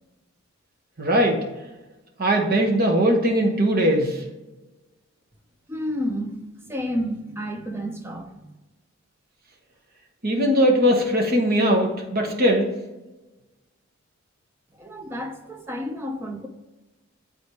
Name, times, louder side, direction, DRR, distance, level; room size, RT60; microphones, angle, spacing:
voice 1, 1.0-1.4 2.2-4.2 10.2-12.7, equal, 45° right, 1.2 m, -20 dB
voice 2, 5.7-8.5 14.8-16.5, equal, 10° right, 0.7 m, -31 dB
8.3 x 4.1 x 3.1 m
head